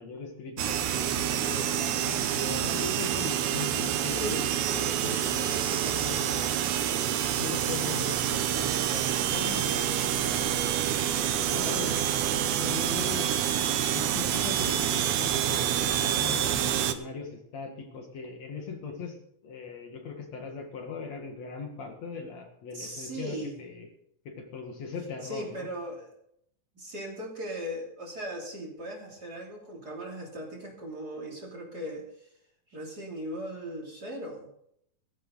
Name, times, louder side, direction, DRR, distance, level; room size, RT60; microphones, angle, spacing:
voice 1, 0.0-4.2 4.7-6.5 6.8-12.1 12.6-13.7 13.9-19.2 19.4-23.9 24.2-25.7, left 5 dB, 60° left, 3 dB, 2.9 m, -40 dB
sound 1, 0.6-16.9, right 10 dB, 70° right, 2.3 m, -27 dB
voice 2, 4.1-4.5 22.7-23.6 25.2-26.1 26.7-32.3 32.7-34.5, equal, 30° right, 1 dB, 3.3 m, -38 dB
16.5 x 15.0 x 4.0 m, 0.71 s
omnidirectional pair, 3.7 m